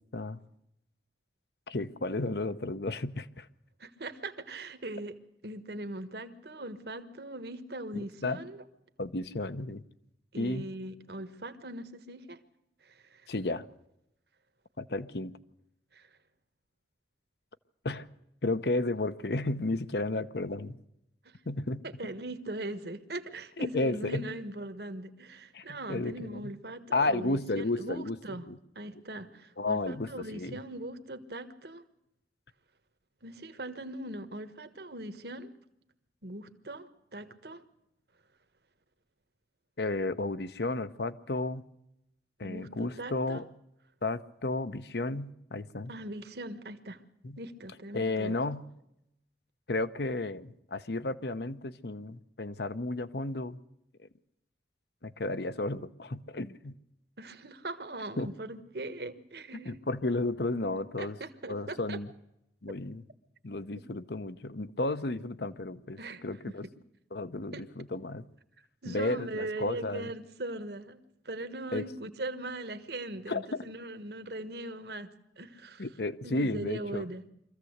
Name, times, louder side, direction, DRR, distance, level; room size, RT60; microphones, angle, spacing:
voice 1, 1.7-3.5 7.9-8.4 9.0-9.8 10.4-10.7 13.3-13.7 14.8-15.3 17.8-18.1 18.4-20.8 21.5-21.8 23.6-24.2 25.5-26.5 26.9-28.6 29.6-30.6 39.8-41.6 42.4-43.5 44.0-45.9 47.2-47.4 47.9-48.6 49.7-53.6 55.0-56.8 58.2-58.3 59.6-61.2 61.5-62.1 62.6-63.0 63.4-66.7 67.1-68.2 68.8-70.1 71.7-71.9 73.3-73.6 75.8-77.0, left 2 dB, 65° left, 13 dB, 0.9 m, -33 dB
voice 2, 3.8-5.2 5.4-8.6 10.3-12.4 12.8-13.3 15.9-16.1 21.2-21.4 21.8-28.5 28.7-31.8 33.2-35.5 36.2-37.6 42.4-43.4 45.9-47.0 47.4-48.4 57.2-59.8 61.0-62.0 66.0-66.6 67.5-67.6 68.8-71.0 71.2-75.9 76.2-77.2, right 1 dB, 65° right, 9 dB, 1.4 m, -40 dB
24.0 x 15.0 x 8.0 m, 0.83 s
head